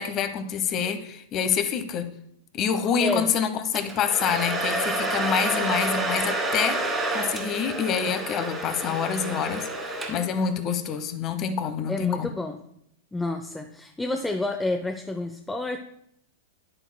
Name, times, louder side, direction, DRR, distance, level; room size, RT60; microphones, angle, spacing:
voice 1, 0.0-2.1 2.5-12.3, left 7 dB, 35° left, 10 dB, 0.9 m, -27 dB
Domestic sounds home sounds, 3.8-10.5, right 2 dB, 15° right, 2.0 m, -29 dB
voice 2, 11.9-12.6 13.1-15.8, left 2 dB, 10° left, 5 dB, 0.5 m, -29 dB
10.0 x 8.7 x 2.2 m, 0.74 s
hypercardioid pair, 100°, 0 cm